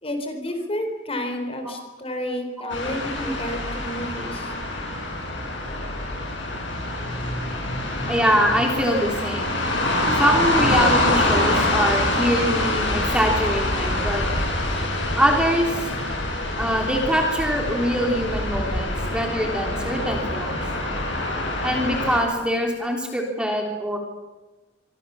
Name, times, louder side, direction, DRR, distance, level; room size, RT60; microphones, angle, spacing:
voice 1, 0.0-4.5, left 1 dB, 30° left, 6 dB, 4.3 m, -30 dB
sound 1, 2.7-22.2, left 1 dB, 80° left, 7.9 m, -25 dB
voice 2, 8.1-9.6 10.2-14.2 15.2-15.7 16.6-20.6 21.6-24.0, equal, 5° right, 1 dB, 3.4 m, -23 dB
sound 2, 9.6-10.8 11.5-11.6 11.9-18.8, equal, 55° left, 7.3 m, -33 dB
26.5 x 24.5 x 7.1 m, 1.2 s
head